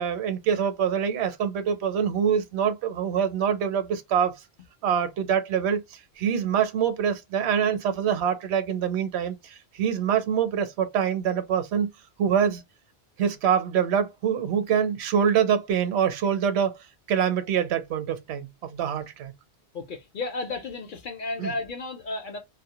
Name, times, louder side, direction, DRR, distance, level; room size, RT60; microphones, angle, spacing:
voice 1, 0.0-4.3 4.8-5.8 6.2-11.9 12.2-12.6 13.2-16.8 17.1-19.3 21.4-21.5, right 8 dB, 75° right, 0.8 m, -25 dB
voice 2, 19.7-22.4, left 3 dB, 55° left, 0.7 m, -33 dB
2.1 x 2.1 x 2.8 m
omnidirectional pair, 1.1 m